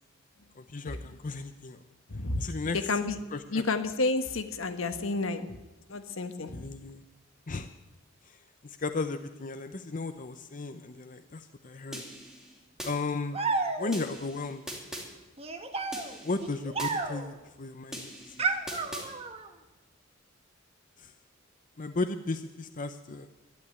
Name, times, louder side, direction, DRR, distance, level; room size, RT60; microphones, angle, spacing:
voice 1, 0.5-1.8 2.4-3.0 3.3-3.7 6.5-7.0 7.5-7.7 8.2-12.0 12.8-13.4 13.8-14.6 16.2-18.5 21.0-21.1 21.8-23.3, left 3 dB, 40° left, 8 dB, 0.7 m, -35 dB
voice 2, 2.1-3.2 3.5-5.6 5.9-6.7, left 3 dB, 75° left, 9 dB, 1.2 m, -31 dB
sound 1, 11.9-12.9 13.9-15.1 15.9-16.9 17.9-19.1, equal, 5° right, 2.6 m, -41 dB
sound 2, 13.3-14.2 15.4-17.4 18.4-19.5, right 4 dB, 30° right, 1.2 m, -32 dB
11.5 x 11.0 x 9.4 m, 1.1 s
head